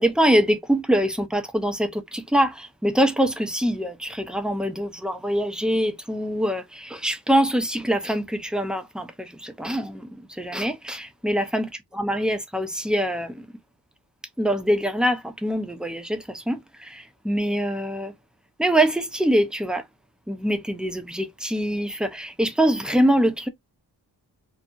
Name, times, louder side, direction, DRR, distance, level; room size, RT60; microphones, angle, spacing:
voice 1, 0.0-13.5 14.4-18.1 18.6-19.8 20.3-23.5, equal, ahead, 0.3 m, -24 dB
2.6 x 2.5 x 2.3 m
wide cardioid pair, 125°, 42 cm